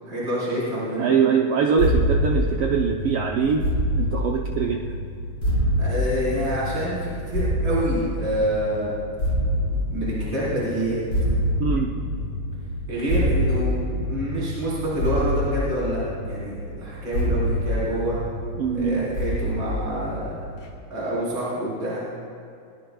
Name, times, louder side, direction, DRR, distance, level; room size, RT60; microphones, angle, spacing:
voice 1, 0.0-1.1 5.8-8.9 9.9-11.0 12.9-13.7 14.1-18.2 18.7-20.3 20.9-22.0, equal, 35° right, -8 dB, 4.6 m, -27 dB
voice 2, 1.0-3.7 4.0-4.9 11.6-12.0 18.6-19.1, right 6 dB, 80° right, 0 dB, 1.3 m, -23 dB
sound 1, 1.8-20.7, equal, 45° left, 2.8 m, -26 dB
21.5 x 21.0 x 2.3 m, 2.4 s
omnidirectional pair, 3.5 m